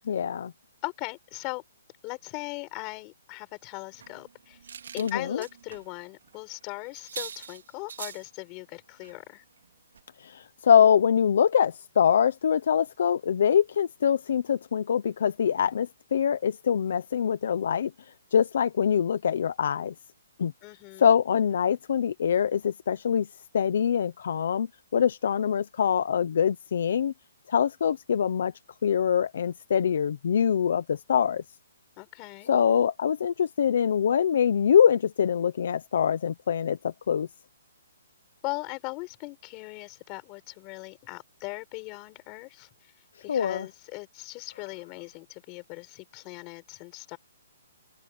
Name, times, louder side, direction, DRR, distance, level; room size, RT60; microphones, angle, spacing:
voice 1, 0.1-0.5 5.0-5.4 10.2-17.9 18.3-19.9 20.4-20.5 21.0-23.3 23.5-24.7 24.9-27.1 27.5-28.5 28.8-31.4 32.5-37.3 43.3-43.7, left 8 dB, 50° left, 0.9 m, -24 dB
voice 2, 0.8-1.6 2.0-4.6 4.9-9.4 20.6-21.1 32.0-32.5 38.4-42.7 43.2-47.2, left 26 dB, 20° left, 5.1 m, -39 dB
sound 1, 3.9-5.9 6.2-6.4 6.6-6.7 6.9-8.3 9.0-9.2 9.6-9.7 9.9-10.0, right 7 dB, 60° right, 3.1 m, -42 dB
open air
hypercardioid pair, 175°, 0 cm